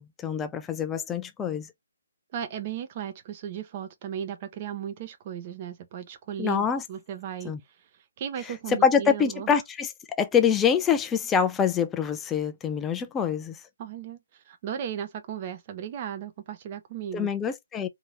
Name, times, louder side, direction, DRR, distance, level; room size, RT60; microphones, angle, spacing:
voice 1, 0.0-1.7 6.4-6.8 7.4-7.6 8.7-13.6 17.1-17.9, left 7 dB, 10° left, 0.3 m, -25 dB
voice 2, 2.3-6.6 6.9-7.5 7.9-9.5 13.8-17.3, right 9 dB, 30° right, 0.6 m, -36 dB
2.7 x 2.7 x 2.9 m
figure-of-eight pair, 135°, 0 cm